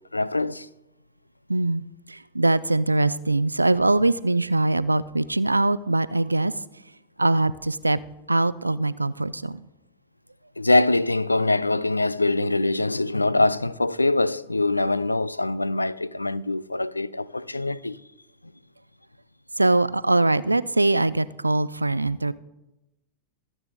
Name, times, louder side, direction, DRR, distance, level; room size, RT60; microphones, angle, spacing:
voice 1, 0.1-0.7 10.6-18.0, left 2 dB, 85° left, 0.4 m, -23 dB
voice 2, 1.5-6.5 7.2-8.0 8.3-9.6 19.6-22.3, right 2 dB, 85° right, 0.4 m, -22 dB
24.0 x 8.1 x 3.7 m
figure-of-eight pair, 90°, 0 cm